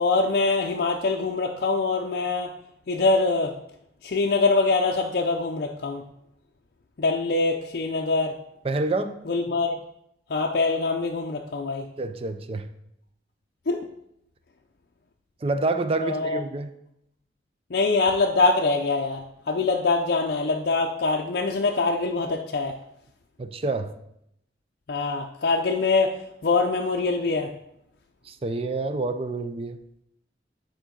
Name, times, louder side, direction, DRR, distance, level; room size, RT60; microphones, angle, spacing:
voice 1, 0.0-2.5 2.9-3.5 4.0-6.0 7.0-8.4 9.3-9.8 10.3-11.9 13.7-13.8 16.0-16.4 17.7-22.7 24.9-27.5, left 3 dB, 55° left, 0.5 m, -24 dB
voice 2, 8.6-9.1 12.0-12.7 15.4-16.7 23.4-23.9 28.3-29.8, right 3 dB, 35° right, 0.4 m, -27 dB
9.9 x 4.3 x 3.8 m
head